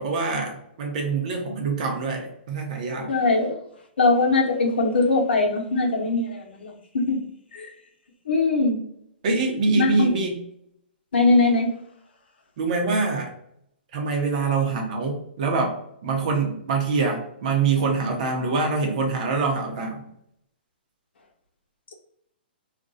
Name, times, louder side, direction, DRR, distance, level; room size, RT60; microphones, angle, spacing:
voice 1, 0.0-3.1 9.2-10.4 12.6-13.3 13.9-15.8 16.0-20.1, right 4 dB, 45° right, 1 dB, 0.8 m, -25 dB
voice 2, 3.1-3.6 4.0-7.2 7.5-7.7 8.3-8.8 9.8-10.1 11.1-11.7, left 3 dB, 85° left, 2 dB, 0.8 m, -21 dB
2.5 x 2.2 x 3.8 m, 0.73 s
hypercardioid pair, 165°, 6 cm